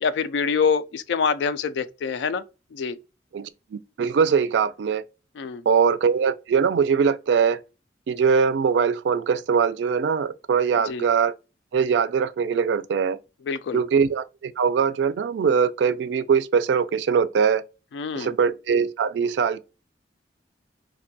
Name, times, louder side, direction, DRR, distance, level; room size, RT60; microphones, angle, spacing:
voice 1, 0.0-2.4 2.7-3.0 5.4-5.6 10.9-11.0 13.5-13.8 17.9-18.3, left 6 dB, 85° left, 0.3 m, -25 dB
voice 2, 3.3-5.0 5.7-7.6 8.1-11.3 11.7-13.2 13.7-17.6 18.2-19.6, right 6 dB, 85° right, 0.3 m, -22 dB
2.6 x 2.2 x 2.6 m
head